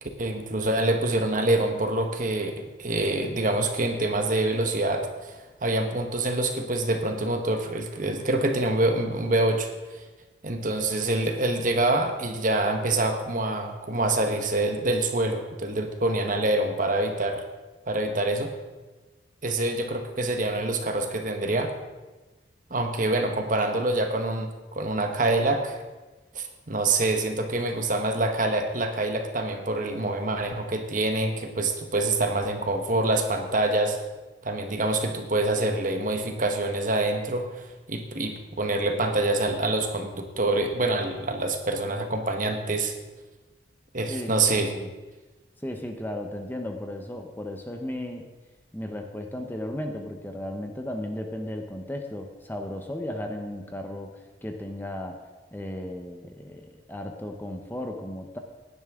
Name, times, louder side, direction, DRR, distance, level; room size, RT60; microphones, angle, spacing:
voice 1, 0.0-10.0 10.4-17.4 17.9-18.5 19.4-21.7 22.7-25.8 26.3-34.0 34.4-42.9 43.9-44.7, right 2 dB, 45° right, 5 dB, 1.3 m, -26 dB
voice 2, 44.1-44.9 45.6-48.3 48.7-55.2 55.5-58.4, left 1 dB, 10° left, 4 dB, 0.9 m, -35 dB
16.5 x 11.0 x 3.7 m, 1.2 s
head